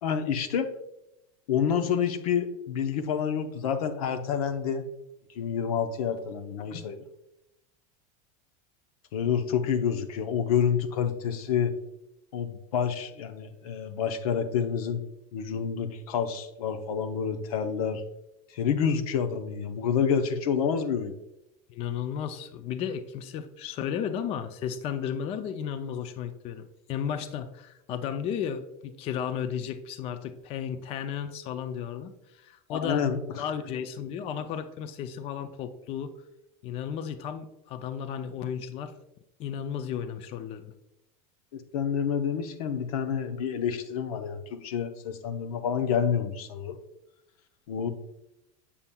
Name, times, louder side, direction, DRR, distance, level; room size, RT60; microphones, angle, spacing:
voice 1, 0.0-0.7 1.5-4.8 5.3-7.0 9.1-11.8 12.3-15.0 15.3-18.0 18.5-21.1 32.7-33.2 41.5-46.8 47.7-47.9, left 7 dB, 90° left, 7 dB, 0.8 m, -28 dB
voice 2, 21.7-33.0 33.3-36.1 36.6-38.9 39.4-40.7, left 8 dB, 35° left, 9 dB, 0.4 m, -34 dB
7.2 x 6.8 x 2.2 m, 0.85 s
supercardioid pair, 150°, 18 cm